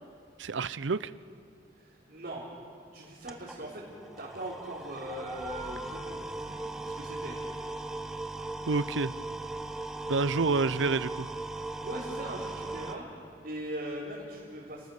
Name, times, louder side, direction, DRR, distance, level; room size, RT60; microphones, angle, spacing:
voice 1, 0.4-1.1 8.7-9.1 10.1-11.3, right 4 dB, 75° right, 16 dB, 0.6 m, -28 dB
voice 2, 1.8-2.4 2.9-3.8 4.2-6.6 6.8-7.4 11.8-13.1 13.4-14.9, right 1 dB, 50° right, -8 dB, 4.3 m, -40 dB
sound 1, 3.0-12.9, right 2 dB, 5° right, 1.0 m, -38 dB
30.0 x 20.5 x 6.6 m, 2.4 s
head